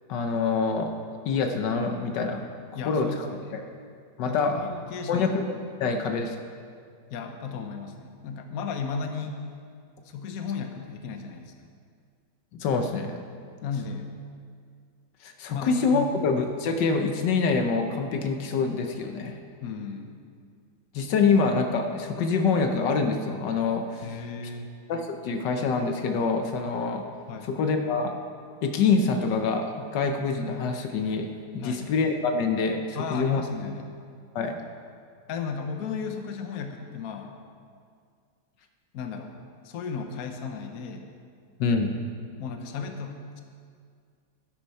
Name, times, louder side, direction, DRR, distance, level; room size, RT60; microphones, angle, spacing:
voice 1, 0.1-0.9 1.2-2.4 2.8-3.3 3.5-3.6 4.2-4.6 5.1-5.5 5.8-6.4 12.6-13.2 15.2-19.4 20.9-24.0 24.9-27.0 27.5-28.1 28.6-31.3 31.5-33.4 34.3-34.5 41.6-41.9, left 4 dB, 80° left, 5 dB, 1.5 m, -25 dB
voice 2, 2.7-3.6 4.3-5.3 5.9-6.1 7.1-9.4 10.0-11.5 13.6-14.1 15.5-16.1 19.6-20.2 24.0-24.7 27.3-27.5 31.6-31.8 32.9-33.9 35.3-37.3 38.9-39.3 39.6-41.0 42.4-43.4, left 5 dB, 60° left, 5 dB, 1.2 m, -35 dB
11.5 x 11.0 x 4.2 m, 2.2 s
omnidirectional pair, 1.9 m